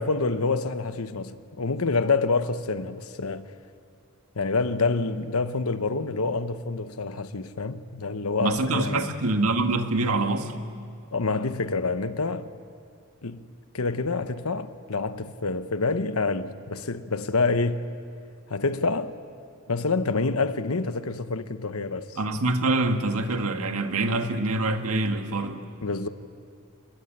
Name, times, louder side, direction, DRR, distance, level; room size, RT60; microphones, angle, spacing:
voice 1, 0.0-3.5 4.3-9.1 11.1-12.5 13.2-13.4 13.7-17.8 18.5-19.1 19.7-22.2 25.8-26.1, left 3 dB, 85° left, 1.1 m, -27 dB
voice 2, 8.4-10.5 22.2-25.7, right 2 dB, 85° right, 1.8 m, -25 dB
29.0 x 21.0 x 8.8 m
head